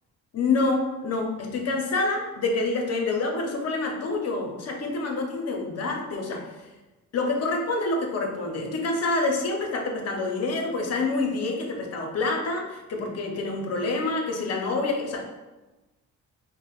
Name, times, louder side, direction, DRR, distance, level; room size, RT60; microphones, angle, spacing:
voice 1, 0.3-6.7 7.1-15.3, left 3 dB, 55° left, 2 dB, 0.7 m, -27 dB
4.7 x 2.1 x 2.4 m, 1.1 s
cardioid pair, 90°, 30 cm